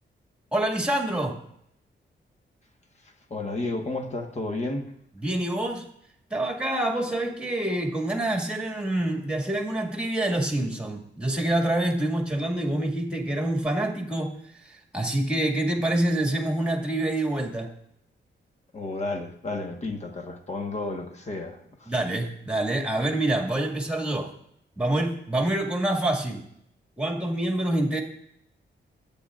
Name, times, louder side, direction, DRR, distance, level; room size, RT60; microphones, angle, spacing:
voice 1, 0.5-1.4 5.2-5.9 6.3-14.4 14.6-17.7 21.9-24.3 24.8-26.4 27.0-28.0, right 1 dB, 5° right, 2.0 m, -26 dB
voice 2, 3.0-4.9 18.7-21.9, left 2 dB, 35° left, 1.4 m, -32 dB
24.0 x 8.9 x 2.5 m
wide cardioid pair, 125°, 20 cm